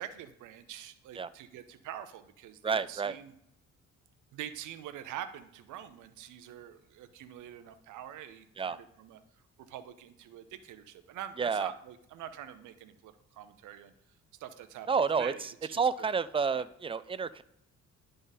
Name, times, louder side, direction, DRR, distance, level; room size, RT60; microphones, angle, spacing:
voice 1, 0.0-3.3 4.3-9.2 9.7-13.9 14.4-14.9 15.2-16.2 16.5-16.7, right 10 dB, 80° right, 9 dB, 0.6 m, -45 dB
voice 2, 2.6-3.2 8.6-8.8 11.4-11.7 14.9-17.4, right 5 dB, 20° right, 15 dB, 0.3 m, -30 dB
10.5 x 3.9 x 4.0 m, 0.75 s
cardioid pair, 90°, 30 cm